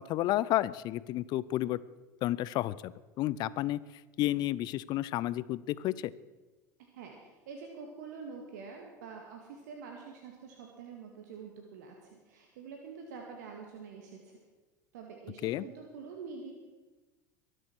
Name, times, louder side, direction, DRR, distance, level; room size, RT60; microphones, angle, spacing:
voice 1, 0.0-1.8 2.2-3.8 4.2-6.1 15.4-15.6, left 15 dB, 45° left, 19 dB, 0.6 m, -31 dB
voice 2, 6.8-14.4 14.9-16.5, right 5 dB, 65° right, 2 dB, 2.0 m, -46 dB
23.0 x 7.9 x 6.2 m, 1.2 s
figure-of-eight pair, 80°, 10 cm